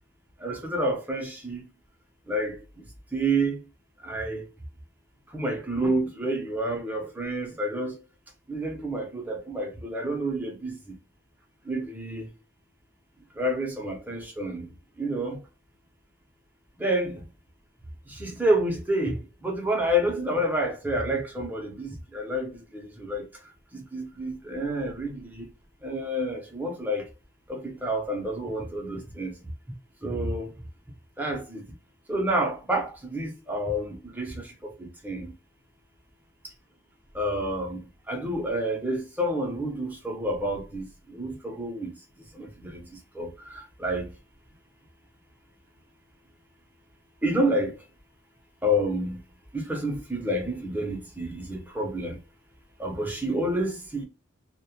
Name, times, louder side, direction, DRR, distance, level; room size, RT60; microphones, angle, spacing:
voice 1, 0.4-1.6 2.3-2.6 3.1-3.6 4.0-4.5 5.3-8.0 8.5-10.8 11.7-12.3 13.4-14.7 15.0-15.4 16.8-17.2 18.1-23.3 23.7-25.5 25.8-27.1 27.5-29.3 30.0-30.5 31.2-31.6 32.1-35.3 37.1-37.8 38.1-41.9 42.4-42.8 43.1-44.1 47.2-47.8 48.6-49.2 49.5-52.2 52.8-54.0, right 1 dB, 10° right, 0.6 m, -29 dB
2.1 x 2.1 x 2.8 m
head